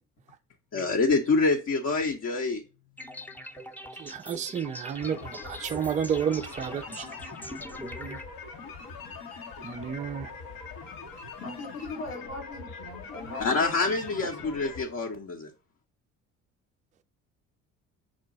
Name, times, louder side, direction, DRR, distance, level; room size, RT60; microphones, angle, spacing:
voice 1, 0.7-2.6 13.4-15.5, left 3 dB, 40° left, 0.8 m, -26 dB
sound 1, 3.0-8.2, left 1 dB, 5° left, 0.7 m, -43 dB
voice 2, 4.0-7.1 7.8-8.2 9.6-10.3, right 8 dB, 20° right, 0.4 m, -31 dB
sound 2, 5.0-14.8, left 4 dB, 70° left, 1.0 m, -42 dB
voice 3, 11.4-14.8, left 2 dB, 90° left, 1.9 m, -40 dB
6.1 x 2.2 x 3.9 m
hypercardioid pair, 55°, 39 cm